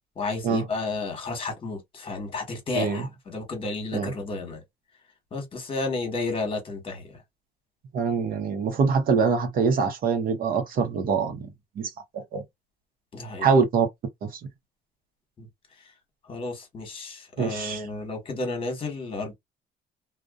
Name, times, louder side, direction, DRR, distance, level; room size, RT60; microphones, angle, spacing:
voice 1, 0.2-4.6 5.3-7.1 13.1-13.5 15.4-15.5 16.3-19.3, left 3 dB, 30° left, 1.2 m, -32 dB
voice 2, 2.7-3.1 3.9-4.1 7.9-11.4 11.8-11.9 12.1-12.4 13.4-13.9 14.2-14.3 17.4-17.8, right 5 dB, 60° right, 0.8 m, -24 dB
2.5 x 2.2 x 2.3 m
cardioid pair, 110°, 17 cm